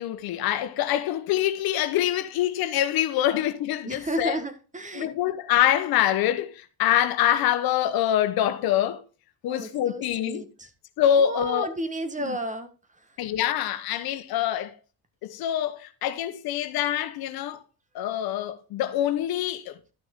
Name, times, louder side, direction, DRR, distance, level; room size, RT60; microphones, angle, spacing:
voice 1, 0.0-4.4 4.9-9.0 9.4-10.5 11.0-11.7 12.2-12.4 13.2-14.7 15.2-17.6 17.9-19.8, left 11 dB, 70° left, 1.1 m, -25 dB
voice 2, 3.8-5.3 9.5-10.7 11.2-12.7, right 1 dB, 20° right, 1.5 m, -33 dB
12.0 x 6.0 x 3.7 m
supercardioid pair, 90°, 38 cm